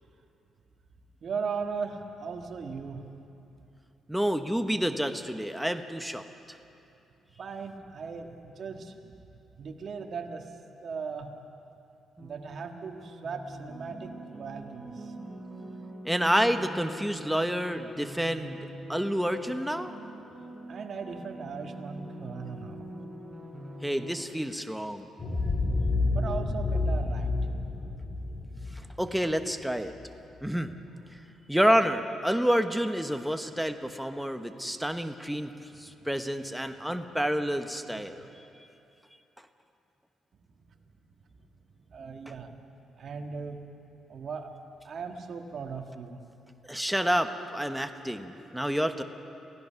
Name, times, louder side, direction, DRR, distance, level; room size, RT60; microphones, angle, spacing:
voice 1, 1.2-3.0 7.4-9.2 9.6-11.3 12.2-15.1 20.7-22.9 26.1-27.3 31.1-31.4 37.9-38.2 41.2-41.3 41.8-42.5 43.0-43.6 44.1-44.5 44.8-46.2, right 5 dB, 55° right, 4 dB, 1.8 m, -38 dB
voice 2, 4.1-6.6 16.0-19.9 23.8-25.1 29.0-29.9 30.4-30.8 31.5-38.3 46.7-49.0, equal, ahead, 7 dB, 1.1 m, -29 dB
sound 1, 12.2-24.2, right 1 dB, 25° right, 4.4 m, -44 dB
sound 2, 25.2-29.9, left 2 dB, 40° left, 4.4 m, -29 dB
28.0 x 16.5 x 5.9 m, 2.8 s
cardioid pair, 85°, 0 cm